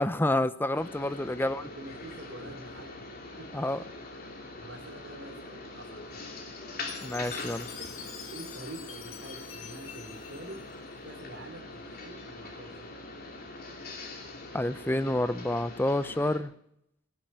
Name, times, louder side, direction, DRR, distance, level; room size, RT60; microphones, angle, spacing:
voice 1, 0.0-1.7 3.5-3.8 7.0-7.7 14.5-16.5, left 1 dB, 10° left, 13 dB, 0.6 m, -28 dB
sound 1, 0.7-16.4, left 2 dB, 50° left, 2.9 m, -43 dB
voice 2, 1.6-3.1 3.4-3.6 4.6-6.4 8.3-10.7 11.0-12.9, right 1 dB, 65° right, -2 dB, 3.1 m, -46 dB
Chime, 6.9-11.2, left 8 dB, 85° left, 2.1 m, -46 dB
18.5 x 7.6 x 9.4 m, 0.75 s
head